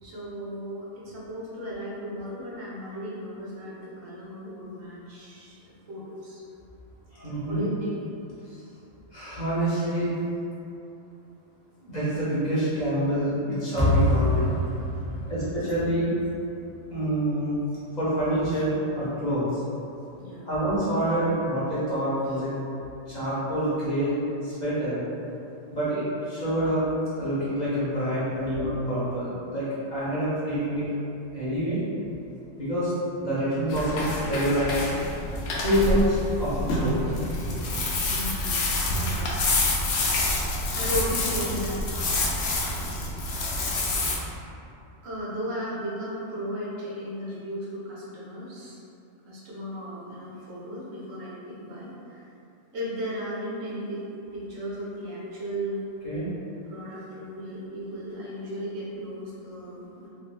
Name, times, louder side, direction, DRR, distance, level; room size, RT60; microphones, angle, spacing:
voice 1, 0.0-5.6 5.9-6.4 7.5-8.0 15.1-15.7 18.5-18.6 20.2-20.5 22.3-22.4 28.4-28.5 35.6-35.8 37.3-37.4 38.1-38.6 38.9-39.3 40.7-41.8 45.0-48.8 49.2-52.3 52.7-54.0 54.3-55.8 56.6-60.1, equal, 85° right, -7 dB, 1.1 m, -35 dB
voice 2, 7.1-7.6 9.1-10.1 11.8-14.6 15.3-16.2 16.9-17.6 18.0-19.6 20.4-22.5 23.1-24.2 24.4-25.0 25.7-26.8 27.2-30.9 31.3-31.8 32.6-34.7 35.6-37.1 56.0-56.3, right 1 dB, 40° left, -11 dB, 0.9 m, -27 dB
sound 1, 13.8-16.9, left 1 dB, 20° right, 0.5 m, -26 dB
sound 2, 33.7-44.2, left 2 dB, 70° left, 0.8 m, -27 dB
3.5 x 2.4 x 2.4 m, 2.7 s
omnidirectional pair, 1.3 m